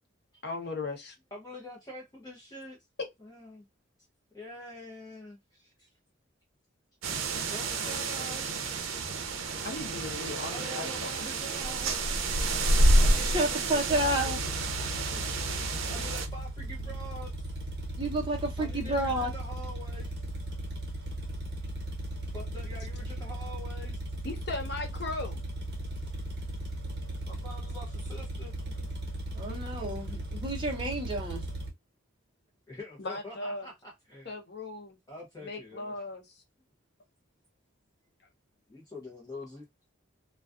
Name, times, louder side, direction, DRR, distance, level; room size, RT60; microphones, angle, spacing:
voice 1, 0.4-1.2 3.0-3.1 9.6-11.1 24.2-25.4 29.5-29.6 33.0-33.7 34.3-35.0 35.4-36.4, left 3 dB, 55° left, 0.7 m, -37 dB
voice 2, 1.3-2.8 3.2-3.7 4.3-5.9 7.5-8.5 10.5-12.1 13.0-14.3 15.1-15.2 15.9-17.4 18.6-20.1 22.3-24.0 27.3-28.5 32.7-34.3 35.1-35.9 38.7-39.7, left 1 dB, 20° left, 0.7 m, -45 dB
sound 1, 7.0-16.3, right 2 dB, 85° right, 0.5 m, -28 dB
voice 3, 13.2-14.4 18.0-19.3 29.3-31.4, right 1 dB, 25° right, 0.7 m, -30 dB
sound 2, 13.9-31.7, right 1 dB, 55° right, 0.9 m, -37 dB
2.3 x 2.3 x 2.3 m
head